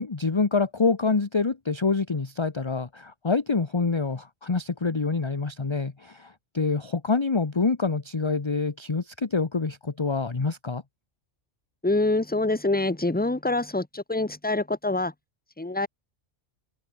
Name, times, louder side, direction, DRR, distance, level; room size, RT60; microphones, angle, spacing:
voice 1, 0.0-10.8, left 4 dB, 25° left, 0.9 m, -26 dB
voice 2, 11.8-15.1 15.6-15.9, left 2 dB, 5° left, 1.3 m, -25 dB
omnidirectional pair, 1.3 m